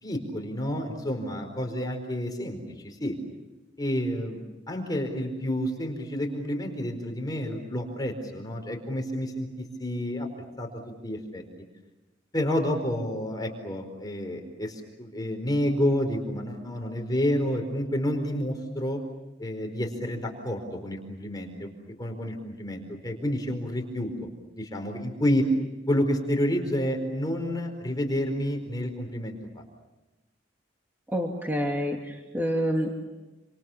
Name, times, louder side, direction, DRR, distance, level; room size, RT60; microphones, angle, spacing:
voice 1, 0.0-3.2 3.8-4.4 4.7-10.3 10.6-10.7 11.0-11.4 12.3-19.0 19.4-21.7 22.0-24.3 24.5-25.5 25.9-29.6, equal, 20° left, 3 dB, 4.6 m, -29 dB
voice 2, 31.1-32.9, equal, 10° right, 0 dB, 2.5 m, -28 dB
29.0 x 27.0 x 7.1 m, 1.1 s
head